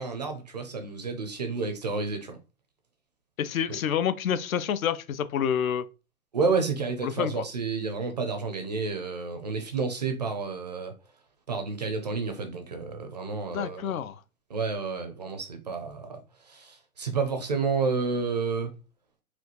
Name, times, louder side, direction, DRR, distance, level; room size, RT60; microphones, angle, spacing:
voice 1, 0.0-2.4 3.7-3.8 6.3-10.9 11.5-13.9 14.5-16.2 16.5-18.7, right 4 dB, 30° right, 0.4 m, -30 dB
voice 2, 3.4-5.9 7.0-7.4 13.5-14.2, left 8 dB, 70° left, 0.6 m, -28 dB
4.3 x 2.2 x 2.7 m
hypercardioid pair, 145°, 43 cm